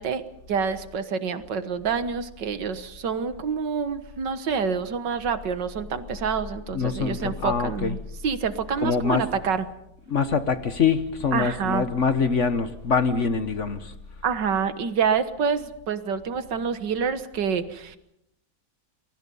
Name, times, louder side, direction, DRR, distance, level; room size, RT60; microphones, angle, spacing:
voice 1, 0.0-8.0 8.2-9.6 11.3-11.8 14.2-18.0, right 6 dB, 75° right, 2.0 m, -27 dB
voice 2, 6.7-8.0 8.8-9.3 10.1-13.9, left 5 dB, 45° left, 1.2 m, -24 dB
29.0 x 22.5 x 5.5 m
omnidirectional pair, 1.9 m